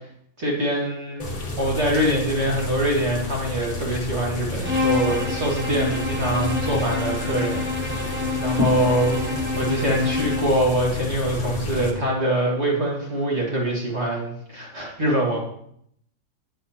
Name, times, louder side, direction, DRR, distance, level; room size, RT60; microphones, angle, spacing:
voice 1, 0.4-8.1 8.4-15.4, right 1 dB, 50° right, -3 dB, 2.3 m, -24 dB
sound 1, 1.2-11.9, left 2 dB, 30° left, 1.0 m, -30 dB
Bowed string instrument, 4.6-10.6, left 3 dB, 10° right, 0.7 m, -27 dB
8.8 x 7.5 x 2.8 m, 0.69 s
omnidirectional pair, 1.5 m